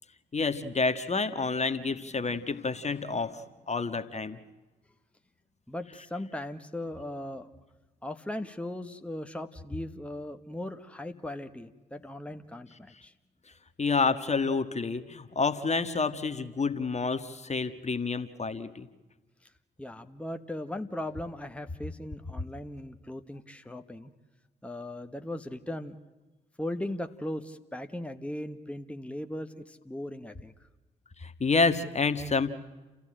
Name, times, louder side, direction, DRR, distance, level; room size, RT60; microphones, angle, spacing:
voice 1, 0.3-4.4 13.8-18.9 31.2-32.6, left 4 dB, 30° left, 11 dB, 1.6 m, -29 dB
voice 2, 5.7-7.5 8.0-13.1 19.4-19.5 19.8-24.1 24.6-26.0 26.6-30.5, left 1 dB, 5° left, 8 dB, 1.4 m, -38 dB
30.0 x 14.5 x 8.9 m, 1.2 s
hypercardioid pair, 40°, 21 cm